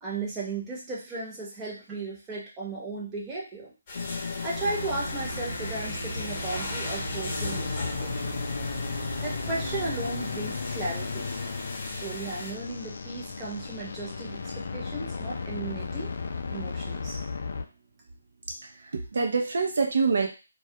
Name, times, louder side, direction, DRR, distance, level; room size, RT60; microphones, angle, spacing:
voice 1, 0.0-3.7 4.4-8.4 9.2-11.3 12.0-16.1 16.5-17.2, right 2 dB, 15° right, -5 dB, 0.8 m, -35 dB
sound 1, 3.9-17.6, left 4 dB, 60° left, 0.3 m, -35 dB
sound 2, 3.9-12.5, left 2 dB, 30° left, 0.9 m, -39 dB
sound 3, 4.6-10.1, right 5 dB, 50° right, 0.9 m, -39 dB
voice 2, 18.6-20.3, right 4 dB, 65° right, 2 dB, 0.4 m, -26 dB
2.2 x 2.1 x 2.7 m, 0.31 s
figure-of-eight pair, 155°, 0 cm